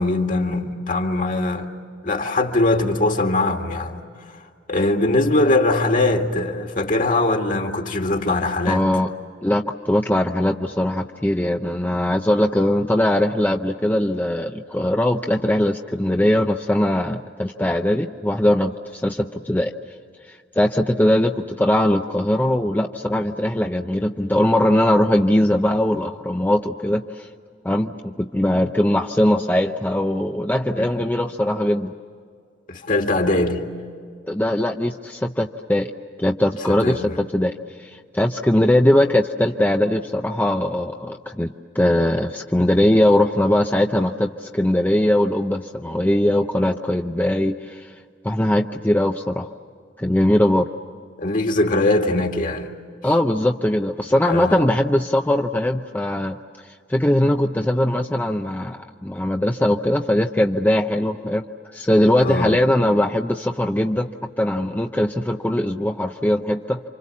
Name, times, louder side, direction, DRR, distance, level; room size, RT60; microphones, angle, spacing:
voice 1, 0.0-1.7 2.0-4.4 4.7-8.9 30.8-31.1 32.7-33.7 36.7-37.2 38.6-38.7 51.2-52.7 54.2-54.6 62.2-62.7, left 2 dB, 45° left, 2.1 m, -21 dB
voice 2, 8.7-9.1 9.4-19.7 20.3-27.3 27.6-31.9 34.3-35.9 36.2-37.5 37.8-47.9 48.2-49.5 50.0-50.7 53.0-56.4 56.9-61.4 61.7-64.1 64.4-66.8, left 1 dB, 10° left, 0.6 m, -20 dB
29.5 x 26.0 x 7.3 m
head